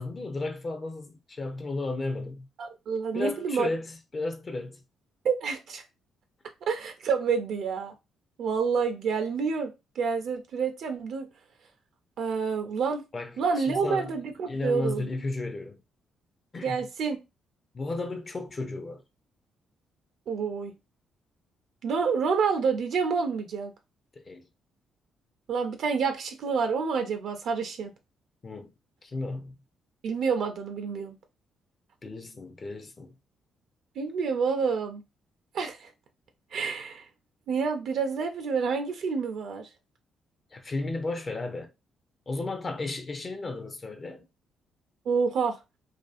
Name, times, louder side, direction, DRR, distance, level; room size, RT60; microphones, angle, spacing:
voice 1, 0.0-2.5 3.1-4.8 13.1-14.1 14.5-15.8 16.5-16.8 17.7-19.0 24.3-24.4 28.4-28.7 29.0-29.5 32.0-33.1 40.5-41.7 42.3-44.2, left 2 dB, 35° left, 0.4 m, -34 dB
voice 2, 2.6-3.7 5.2-5.9 6.7-7.9 8.4-11.3 12.2-13.0 13.4-15.1 16.6-17.2 20.3-20.7 21.8-23.7 25.5-27.9 30.0-31.2 34.0-35.0 35.5-35.9 36.5-37.1 37.5-39.7 45.1-45.6, right 5 dB, 70° right, 0.4 m, -28 dB
2.5 x 2.3 x 2.4 m
cardioid pair, 90°, 0 cm